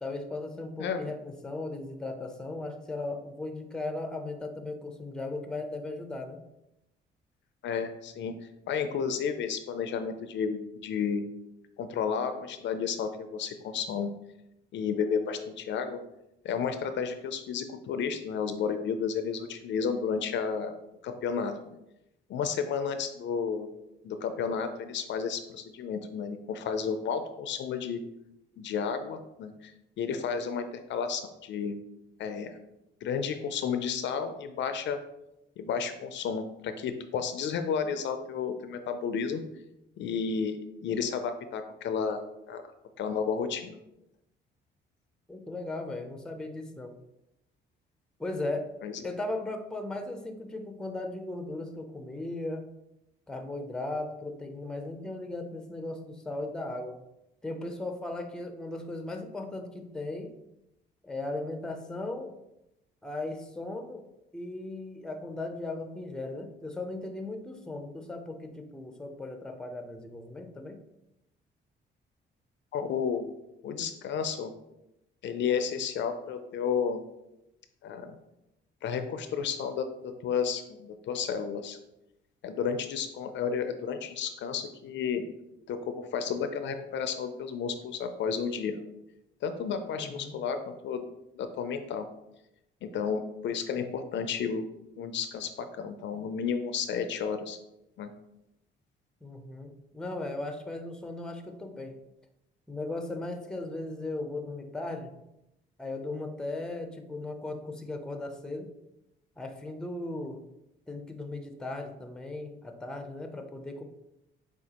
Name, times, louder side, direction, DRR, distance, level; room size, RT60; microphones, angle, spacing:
voice 1, 0.0-6.4 45.3-47.0 48.2-48.7 49.0-52.7 53.3-57.0 57.4-60.3 61.0-62.3 63.0-64.0 64.3-70.8 90.0-90.4 99.2-102.0 102.7-105.1 105.8-108.7 109.4-110.4 110.9-113.8, left 2 dB, 5° left, 5 dB, 0.5 m, -37 dB
voice 2, 0.8-1.1 7.6-8.4 8.7-11.3 11.8-14.1 14.7-16.0 16.4-20.7 21.0-21.8 22.3-23.7 24.0-28.0 28.6-29.7 30.0-31.8 32.2-32.6 33.0-35.0 35.6-39.4 40.0-42.2 42.5-42.6 43.0-43.8 48.8-49.0 72.7-73.3 73.6-74.5 75.2-77.0 77.8-78.2 78.8-81.8 82.4-85.2 85.7-88.9 89.4-91.0 91.4-92.1 92.8-94.7 95.0-97.6 98.0-98.1, left 6 dB, 65° left, 8 dB, 0.4 m, -32 dB
6.4 x 2.4 x 2.9 m, 0.88 s
cardioid pair, 90°, 20 cm